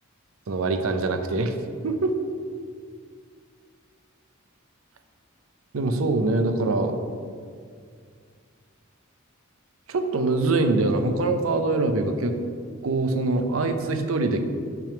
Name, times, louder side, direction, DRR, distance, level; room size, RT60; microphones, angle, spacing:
voice 1, 0.5-1.5 1.8-2.2 5.7-6.9 9.9-12.4 12.8-14.4, right 2 dB, 80° right, 7 dB, 0.6 m, -23 dB
5.8 x 3.5 x 5.8 m, 2.1 s
head